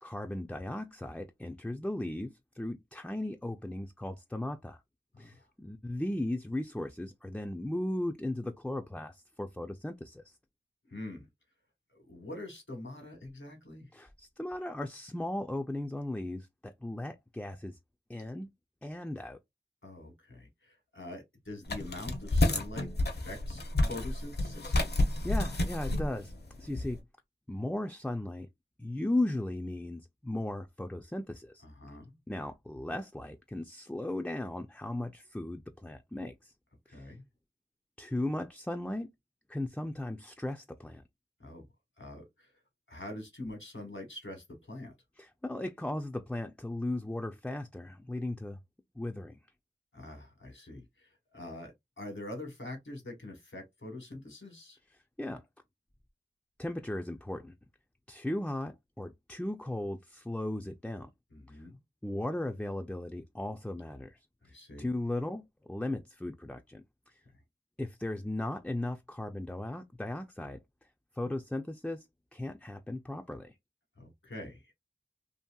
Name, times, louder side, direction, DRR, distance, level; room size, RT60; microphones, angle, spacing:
voice 1, 0.0-4.8 5.2-10.4 13.9-17.8 18.1-18.5 18.8-19.4 25.2-26.3 26.6-27.0 27.5-28.5 28.8-31.6 32.3-36.5 36.9-37.1 38.0-39.1 39.5-41.0 45.2-48.6 49.0-49.4 55.2-55.4 56.6-57.5 58.1-61.1 61.5-61.6 62.0-64.2 64.8-67.2 67.8-70.6 71.1-72.0 72.3-73.6, left 1 dB, 5° left, 0.3 m, -36 dB
voice 2, 5.1-5.5 10.8-11.3 11.9-13.9 19.8-24.8 31.6-32.2 36.8-37.2 41.4-41.7 42.0-42.5 42.9-44.9 49.9-51.7 52.0-54.8 61.3-61.8 64.4-64.9 74.0-74.7, left 1 dB, 80° left, 1.2 m, -45 dB
sound 1, 21.7-26.9, left 2 dB, 60° left, 0.6 m, -30 dB
2.8 x 2.7 x 2.2 m
wide cardioid pair, 45°, 19 cm